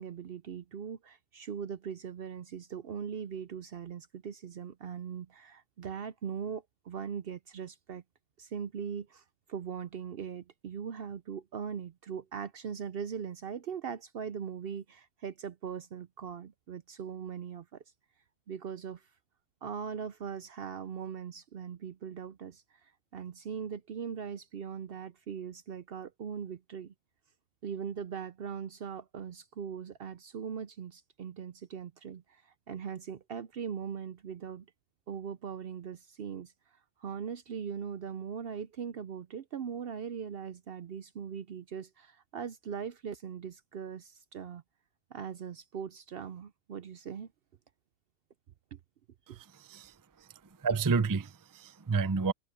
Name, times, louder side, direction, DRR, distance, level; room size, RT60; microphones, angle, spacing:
voice 1, 0.0-8.0 8.4-9.2 9.5-17.8 18.5-19.1 19.6-26.9 27.6-34.7 35.1-36.5 37.0-44.6 45.1-47.3 48.7-48.8 49.3-49.4, right 7 dB, 60° right, 0.7 m, -40 dB
voice 2, 50.6-52.3, right 4 dB, 25° right, 0.4 m, -29 dB
omnidirectional pair, 1.3 m